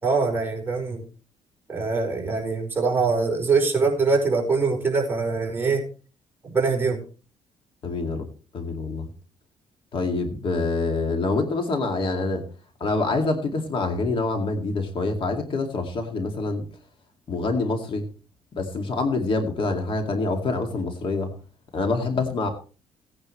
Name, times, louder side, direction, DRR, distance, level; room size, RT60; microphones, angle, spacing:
voice 1, 0.0-1.0 1.7-5.8 6.4-7.0, right 4 dB, 20° right, 0 dB, 4.9 m, -23 dB
voice 2, 7.8-8.3 8.5-9.0 9.9-12.4 12.8-16.6 17.3-18.1 18.5-21.3 21.7-22.5, left 3 dB, 45° left, 4 dB, 2.2 m, -26 dB
17.5 x 9.7 x 3.2 m, 0.36 s
cardioid pair, 115°, 12 cm